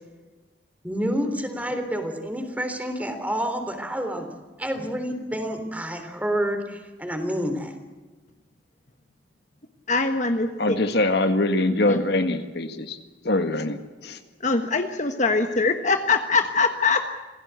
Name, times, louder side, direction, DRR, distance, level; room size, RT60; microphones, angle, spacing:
voice 1, 0.8-4.3 4.6-7.7, equal, 10° right, 7 dB, 3.5 m, -28 dB
voice 2, 9.9-10.8 11.9-12.0 14.4-17.1, left 4 dB, 45° left, 6 dB, 1.4 m, -23 dB
voice 3, 10.6-13.0 13.2-13.8 14.0-14.2, left 2 dB, 65° left, 8 dB, 1.8 m, -23 dB
26.5 x 17.0 x 8.2 m, 1.3 s
head